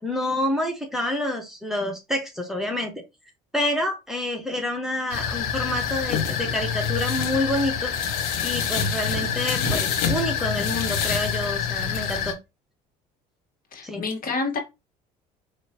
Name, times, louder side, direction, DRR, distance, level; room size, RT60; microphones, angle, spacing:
voice 1, 0.0-3.0 3.5-7.9 8.4-12.4 13.8-14.0, left 1 dB, ahead, 1 dB, 1.5 m, -28 dB
sound 1, 5.1-12.3, left 7 dB, 85° left, 1.1 m, -26 dB
voice 2, 13.7-14.6, left 3 dB, 50° left, 3 dB, 1.8 m, -28 dB
4.9 x 3.0 x 3.0 m, 0.24 s
hypercardioid pair, 70°, 19 cm